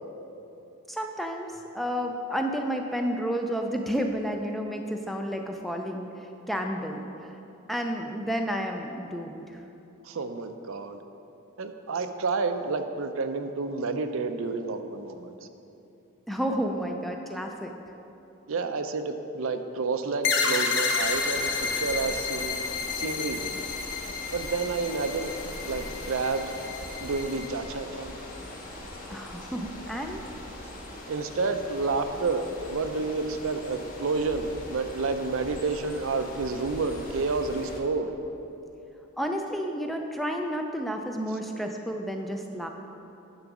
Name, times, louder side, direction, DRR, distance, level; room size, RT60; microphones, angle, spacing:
voice 1, 0.9-1.5 1.7-6.1 6.5-7.4 7.7-9.6 16.3-17.7 29.1-30.2 39.2-42.7, equal, ahead, 3 dB, 0.4 m, -31 dB
voice 2, 10.0-11.0 11.6-15.3 18.5-23.6 24.3-25.3 25.6-26.5 27.0-28.1 31.1-38.1, right 4 dB, 65° right, 8 dB, 0.5 m, -30 dB
sound 1, 20.2-27.5, left 5 dB, 55° left, 0.7 m, -31 dB
sound 2, 21.0-37.8, left 1 dB, 40° left, 1.1 m, -41 dB
10.5 x 3.9 x 5.9 m, 2.9 s
head